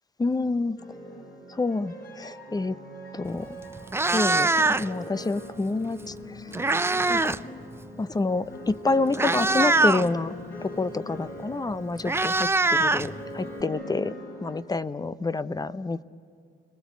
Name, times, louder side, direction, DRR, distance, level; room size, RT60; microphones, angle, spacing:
voice 1, 0.2-0.8 1.5-2.7 3.1-3.6 4.1-6.4 7.1-7.4 8.0-10.4 10.6-14.1 14.4-16.0, left 3 dB, 20° left, 15 dB, 0.8 m, -28 dB
sound 1, 0.8-14.6, left 1 dB, 50° left, 7.2 m, -41 dB
Meow, 3.3-3.4 3.8-5.1 6.1-7.5 7.7-8.0 8.7-8.8 9.1-10.1 11.4-11.5 11.7-13.6, right 2 dB, 10° right, 0.6 m, -23 dB
30.0 x 19.5 x 8.4 m, 2.3 s
cardioid pair, 90°, 20 cm